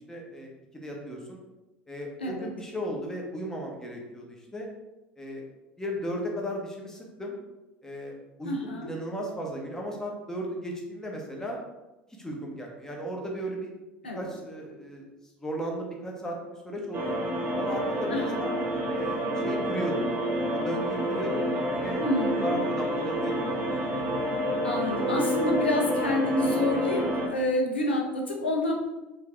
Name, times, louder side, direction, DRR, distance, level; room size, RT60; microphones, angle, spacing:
voice 1, 0.1-0.5 0.8-1.4 1.9-4.7 5.2-5.4 5.8-7.4 7.8-11.6 12.2-13.7 14.1-15.0 15.4-17.2 17.6-18.5 18.9-21.5 21.8-22.0 22.4-23.6, equal, 10° left, -1 dB, 1.0 m, -35 dB
voice 2, 8.4-8.9 14.0-14.3 18.1-18.4 22.0-22.6 24.6-28.7, left 1 dB, 85° left, 0 dB, 0.7 m, -28 dB
sound 1, 16.9-27.3, right 1 dB, 35° right, 1.1 m, -28 dB
4.6 x 2.7 x 3.4 m, 1.0 s
figure-of-eight pair, 65°, 6 cm